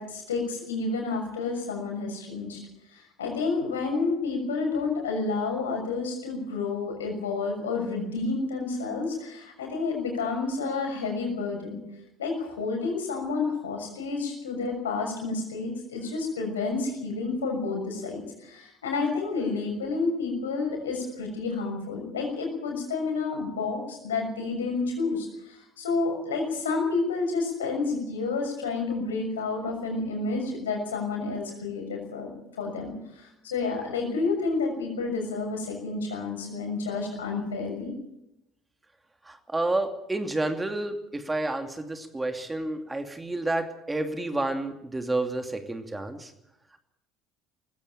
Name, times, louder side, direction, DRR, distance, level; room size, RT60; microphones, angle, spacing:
voice 1, 0.0-2.6 2.9-11.8 12.2-37.9, left 4 dB, 85° left, 2 dB, 6.4 m, -30 dB
voice 2, 39.3-46.3, right 2 dB, 15° right, 6 dB, 2.6 m, -30 dB
19.5 x 15.5 x 9.0 m, 0.86 s
hypercardioid pair, 65°, 0 cm